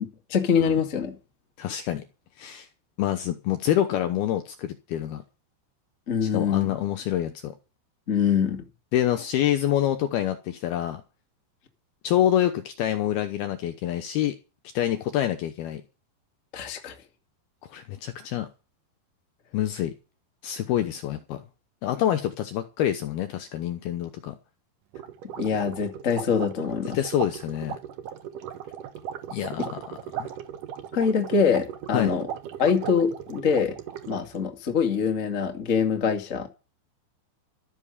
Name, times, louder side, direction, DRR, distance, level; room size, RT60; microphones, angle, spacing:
voice 1, 0.3-1.1 6.1-6.8 8.1-8.6 16.5-16.9 25.4-27.0 29.6-29.7 30.9-32.3 32.6-33.8 34.1-36.5, left 6 dB, 35° left, 1.3 m, -24 dB
voice 2, 1.6-2.0 2.4-2.7 3.0-5.2 6.3-7.5 8.9-11.0 12.0-14.3 14.7-15.8 17.7-18.5 19.5-19.9 20.4-21.4 21.8-24.4 26.9-27.8 29.3-30.3 31.9-32.1, left 11 dB, 75° left, 2.5 m, -26 dB
sound 1, 24.9-34.4, right 9 dB, 65° right, 2.2 m, -37 dB
13.5 x 7.3 x 8.4 m
omnidirectional pair, 5.4 m